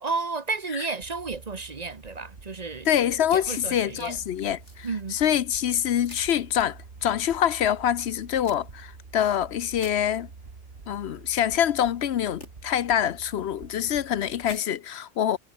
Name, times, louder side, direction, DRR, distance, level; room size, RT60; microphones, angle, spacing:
voice 1, 0.0-2.9 3.3-4.2 4.8-5.2, right 4 dB, 40° right, 1.0 m, -32 dB
sound 1, 1.0-14.6, right 4 dB, 60° right, 2.2 m, -47 dB
voice 2, 2.9-10.3 10.9-15.4, left 10 dB, 70° left, 0.9 m, -25 dB
sound 2, 3.3-4.1 4.6-5.3 6.1-6.3 8.4-8.6 9.8-10.0 12.4-12.5 14.4-14.6, left 2 dB, 85° left, 6.6 m, -45 dB
omnidirectional pair, 1.2 m